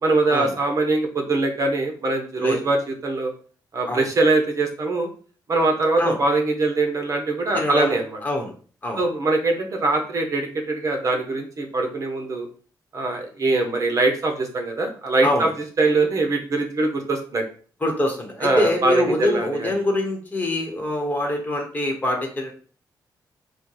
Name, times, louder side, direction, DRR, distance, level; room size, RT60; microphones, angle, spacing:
voice 1, 0.0-3.3 3.7-5.1 5.5-8.2 9.0-12.5 12.9-15.5 15.8-17.4 18.4-19.7, right 2 dB, 45° right, 3 dB, 1.0 m, -22 dB
voice 2, 7.5-8.0 8.2-8.5 8.8-9.0 15.2-15.5 17.8-22.5, left 1 dB, 20° left, 2 dB, 1.2 m, -24 dB
4.4 x 2.3 x 4.7 m, 0.42 s
cardioid pair, 115°, 8 cm